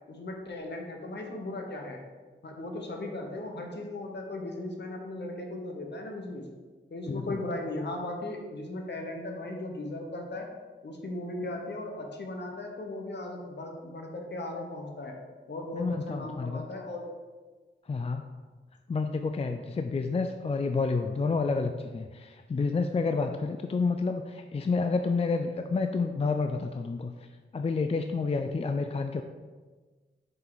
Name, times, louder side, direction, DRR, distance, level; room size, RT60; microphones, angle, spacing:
voice 1, 0.1-2.0 2.4-6.5 6.9-10.5 10.8-15.2 15.5-17.1, left 2 dB, 60° left, 2 dB, 1.1 m, -37 dB
voice 2, 7.1-7.4 15.7-16.6 17.9-18.4 18.9-27.1 27.5-29.2, left 4 dB, 30° left, 6 dB, 0.4 m, -29 dB
5.6 x 4.4 x 4.0 m, 1.4 s
cardioid pair, 55°, 20 cm